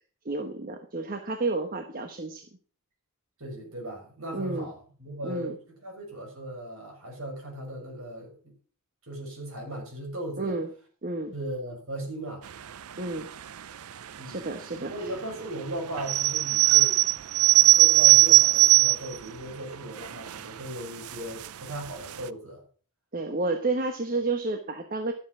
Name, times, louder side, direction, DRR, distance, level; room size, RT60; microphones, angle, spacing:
voice 1, 0.2-2.4 4.3-4.7 5.2-5.6 10.4-10.7 11.0-11.3 13.0-13.3 13.7-13.8 14.2-15.1 23.1-25.1, right 3 dB, 40° right, 5 dB, 1.2 m, -31 dB
voice 2, 3.4-5.5 5.8-8.4 9.1-10.6 11.3-12.4 14.2-14.5 14.8-17.0 17.7-22.6, right 1 dB, 65° right, 0 dB, 6.3 m, -37 dB
sound 1, 16.0-19.2 19.7-19.8 20.0-20.4 21.1-21.5 21.9-22.0 22.1-22.2, right 16 dB, 85° right, 0.5 m, -18 dB
12.5 x 7.7 x 6.0 m, 0.41 s
head